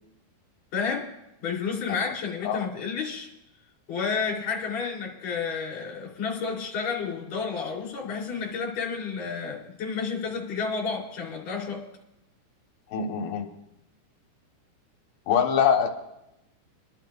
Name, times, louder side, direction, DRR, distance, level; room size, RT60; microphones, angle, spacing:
voice 1, 0.7-1.1 1.4-3.3 3.9-11.8, left 5 dB, 40° left, -3 dB, 4.2 m, -31 dB
voice 2, 12.9-13.5 15.3-15.9, left 7 dB, 70° left, 2 dB, 3.2 m, -23 dB
28.5 x 11.5 x 2.5 m, 0.88 s
omnidirectional pair, 5.1 m